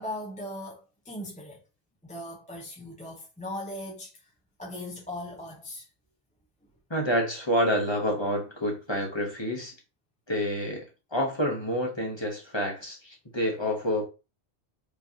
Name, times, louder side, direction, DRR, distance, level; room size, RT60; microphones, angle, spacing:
voice 1, 0.0-1.6 2.0-4.1 4.6-5.9, left 1 dB, 5° left, 0.8 m, -38 dB
voice 2, 6.9-9.7 10.3-10.9 11.1-14.1, equal, 25° left, 1.2 m, -28 dB
5.0 x 3.3 x 2.8 m
omnidirectional pair, 1.2 m